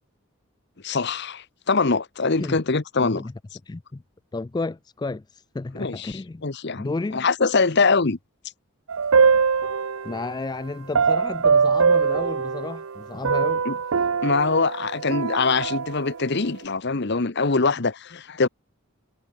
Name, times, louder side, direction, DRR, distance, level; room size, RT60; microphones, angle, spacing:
voice 1, 0.8-3.2 5.7-8.2 13.7-13.8 14.2-18.5, left 4 dB, 55° left, 1.0 m, -23 dB
voice 2, 3.0-3.3 3.7-4.0 4.3-6.4 6.8-7.3 10.0-13.6, left 3 dB, 20° left, 0.3 m, -32 dB
sound 1, 8.9-10.3 11.0-13.0 13.2-16.2, right 5 dB, 80° right, 0.7 m, -22 dB
head